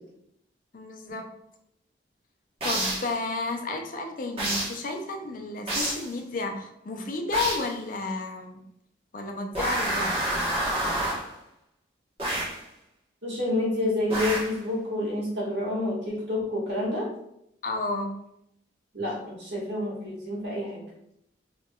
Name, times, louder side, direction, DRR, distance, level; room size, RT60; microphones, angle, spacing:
voice 1, 0.7-1.3 2.6-8.6 9.1-10.1 17.6-18.2, left 3 dB, 50° left, 4 dB, 0.4 m, -32 dB
sound 1, 2.6-3.1 4.4-4.8 5.7-6.1 7.3-7.7 9.5-11.3 12.2-12.6 14.1-14.6, right 1 dB, 35° right, 1.0 m, -28 dB
voice 2, 13.2-17.1 18.9-20.8, left 1 dB, 70° right, -6 dB, 1.4 m, -28 dB
3.4 x 2.9 x 2.2 m, 0.77 s
head